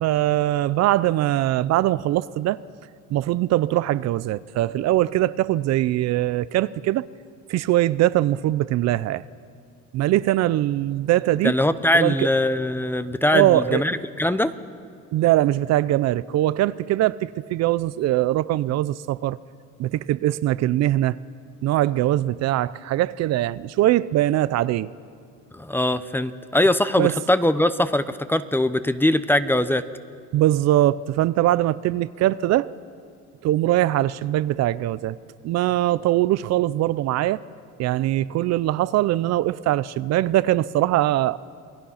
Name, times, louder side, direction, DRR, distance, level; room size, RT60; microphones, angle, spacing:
voice 1, 0.0-2.6 3.1-7.1 7.5-9.2 9.9-11.5 11.9-12.3 13.3-13.8 15.1-19.4 19.8-21.2 21.6-24.9 27.0-27.1 30.3-32.7 33.4-35.2 35.4-37.4 37.8-41.4, right 14 dB, 60° right, 17 dB, 0.6 m, -21 dB
voice 2, 11.4-14.5 25.5-29.8, left 1 dB, 5° left, 13 dB, 0.7 m, -21 dB
28.0 x 20.0 x 5.7 m, 2.2 s
cardioid pair, 115°, 30 cm